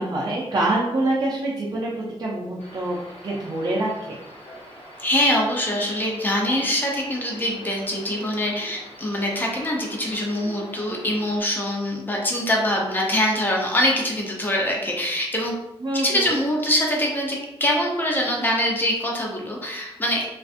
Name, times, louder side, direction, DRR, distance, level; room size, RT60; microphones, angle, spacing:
voice 1, 0.0-3.0 3.2-4.2 15.8-16.3, right 2 dB, 40° right, -5 dB, 0.4 m, -25 dB
sound 1, 2.6-11.4, equal, 80° left, 0.8 m, -44 dB
voice 2, 5.0-15.5 15.9-20.3, left 1 dB, 20° left, -1 dB, 0.6 m, -24 dB
2.5 x 2.4 x 2.4 m, 0.92 s
wide cardioid pair, 115°, 10 cm